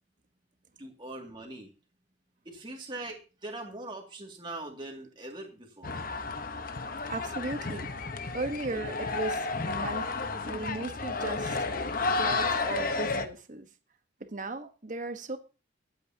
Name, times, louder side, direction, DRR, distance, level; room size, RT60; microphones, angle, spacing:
voice 1, 0.8-1.7 2.5-6.0, right 2 dB, 25° right, 0 dB, 2.3 m, -41 dB
sound 1, 5.8-13.3, left 3 dB, 50° left, 1.1 m, -32 dB
voice 2, 7.1-7.9 8.3-10.1 10.4-11.8 12.0-13.7 14.2-15.4, right 2 dB, 45° right, 8 dB, 1.2 m, -36 dB
23.5 x 8.6 x 2.8 m, 0.33 s
head